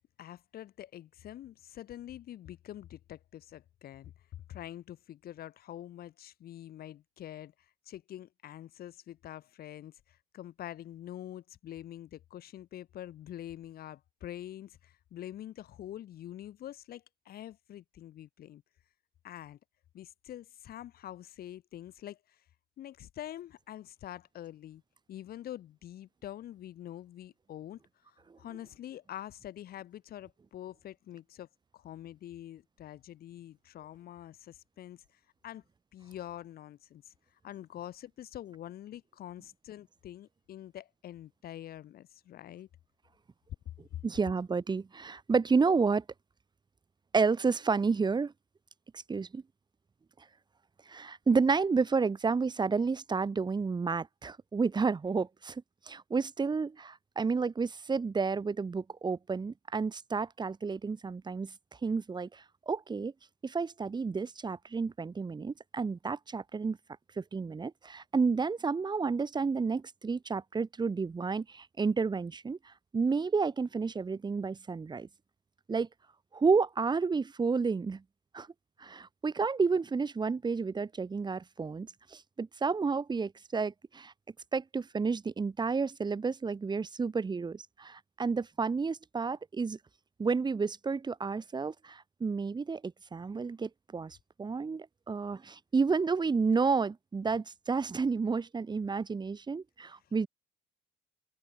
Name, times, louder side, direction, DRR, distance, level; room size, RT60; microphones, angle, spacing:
voice 1, 0.2-4.1 4.5-18.6 19.2-19.6 19.9-22.4 22.8-24.8 25.1-27.8 28.1-31.5 31.7-35.6 35.9-42.7 100.0-100.1, left 12 dB, 65° left, 5.9 m, -46 dB
voice 2, 44.0-46.0 47.1-48.3 48.9-49.4 50.9-61.5 61.8-63.1 63.4-66.8 67.2-75.1 75.7-75.9 76.3-78.0 78.3-78.5 78.8-84.1 84.5-89.8 90.2-100.3, right 4 dB, 25° right, 3.3 m, -31 dB
cardioid pair, 110°, 17 cm